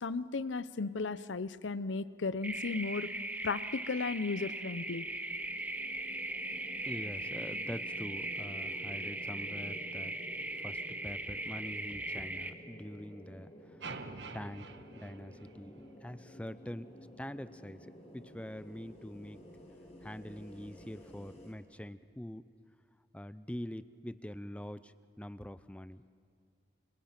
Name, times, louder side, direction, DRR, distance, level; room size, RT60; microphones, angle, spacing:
voice 1, 0.0-3.1 3.4-5.0, left 4 dB, 85° left, 16 dB, 0.7 m, -35 dB
sound 1, 2.4-12.5, right 2 dB, 10° right, 0.9 m, -39 dB
sound 2, 4.2-21.5, equal, 35° left, 3.7 m, -53 dB
voice 2, 6.8-10.2 10.6-13.9 14.3-14.7 15.0-16.9 17.2-19.4 20.0-22.5 23.1-26.0, equal, 5° left, 14 dB, 0.6 m, -44 dB
sound 3, 13.8-16.1, right 4 dB, 70° right, 1.3 m, -46 dB
29.0 x 28.0 x 6.0 m, 2.5 s
head